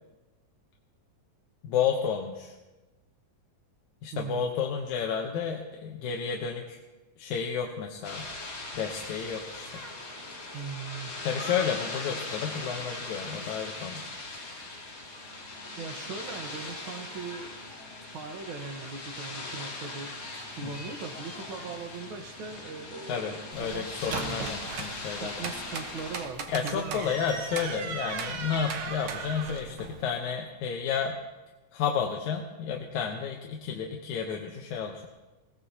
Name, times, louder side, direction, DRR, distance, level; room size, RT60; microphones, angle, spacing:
voice 1, 1.6-2.5 4.0-6.8 7.2-8.3 8.7-9.8 11.2-14.0 23.1-25.4 26.5-31.2 31.7-35.1, left 7 dB, 70° left, 1 dB, 2.1 m, -31 dB
voice 2, 4.1-4.5 10.5-11.1 15.8-17.5 18.1-23.8 24.1-24.9 25.1-27.4, right 4 dB, 60° right, 5 dB, 1.3 m, -40 dB
sound 1, 8.0-26.2, left 2 dB, 30° left, 2.3 m, -40 dB
sound 2, 23.5-30.0, right 5 dB, 75° right, 1.1 m, -38 dB
21.0 x 17.5 x 2.8 m, 1.1 s
omnidirectional pair, 3.8 m